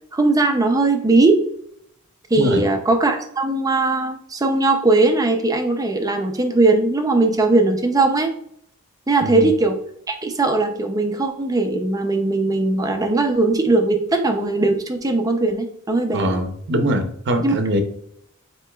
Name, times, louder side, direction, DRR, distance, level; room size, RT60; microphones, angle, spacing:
voice 1, 0.1-1.4 2.3-8.3 9.1-9.8 10.1-16.4 17.4-17.5, right 2 dB, 15° right, 5 dB, 0.4 m, -19 dB
voice 2, 2.3-2.7 9.2-9.5 16.1-17.8, equal, 55° right, 6 dB, 0.7 m, -22 dB
7.5 x 2.9 x 2.3 m, 0.70 s
head